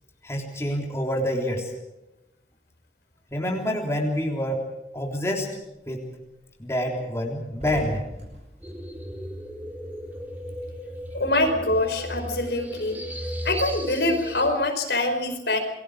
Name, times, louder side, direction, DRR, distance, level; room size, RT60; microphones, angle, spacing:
voice 1, 0.2-1.7 3.3-4.7 4.9-5.6 5.9-6.0 6.6-8.0, equal, 15° left, 0 dB, 3.6 m, -27 dB
sound 1, 5.6-5.8 6.2-6.3 6.6-6.8 7.1-10.1 10.4-12.0, equal, 40° right, 8.0 m, -42 dB
sound 2, 8.6-14.5, equal, 10° right, 3.9 m, -35 dB
voice 2, 11.1-13.0 13.4-15.6, left 2 dB, 65° left, 5 dB, 4.7 m, -24 dB
29.0 x 22.0 x 5.0 m, 0.93 s
head